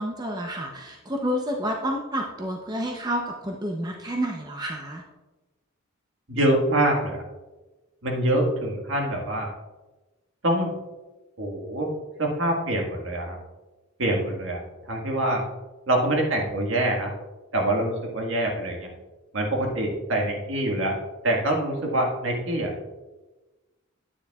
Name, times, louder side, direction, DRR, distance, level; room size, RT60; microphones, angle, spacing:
voice 1, 0.0-5.0, equal, 20° right, 1 dB, 0.7 m, -29 dB
voice 2, 6.3-7.2 8.0-9.5 10.4-10.7 11.4-11.9 12.2-13.4 14.0-14.6 14.8-15.4 15.9-17.1 17.5-18.9 19.3-21.0 21.2-22.9, right 1 dB, 65° right, 0 dB, 1.6 m, -25 dB
9.8 x 9.4 x 2.3 m, 1.2 s
head